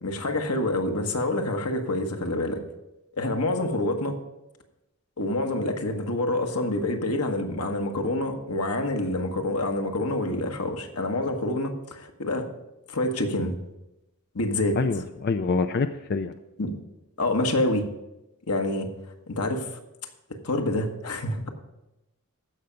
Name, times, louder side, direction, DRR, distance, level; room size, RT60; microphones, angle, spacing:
voice 1, 0.0-2.6 3.2-4.2 5.2-12.5 12.9-13.5 14.3-15.0 16.6-16.7 17.2-17.9 18.5-18.9 19.3-19.7 20.3-21.5, left 1 dB, 85° left, 4 dB, 1.3 m, -27 dB
voice 2, 14.8-16.3, left 4 dB, 45° left, 9 dB, 0.4 m, -26 dB
14.5 x 5.8 x 5.1 m, 0.95 s
head